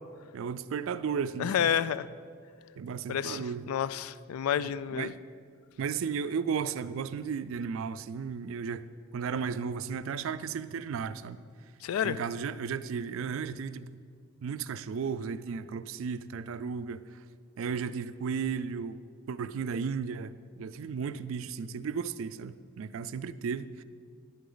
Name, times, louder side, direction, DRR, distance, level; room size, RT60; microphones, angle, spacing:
voice 1, 0.3-1.7 2.8-3.7 4.6-5.2 5.8-8.9 9.1-11.4 12.0-13.9 14.4-17.2 17.6-19.0 19.3-23.8, right 6 dB, 65° right, 0.3 m, -34 dB
voice 2, 1.4-2.1 3.1-5.1 11.8-12.2, left 9 dB, 80° left, 0.3 m, -30 dB
10.5 x 8.3 x 3.9 m
head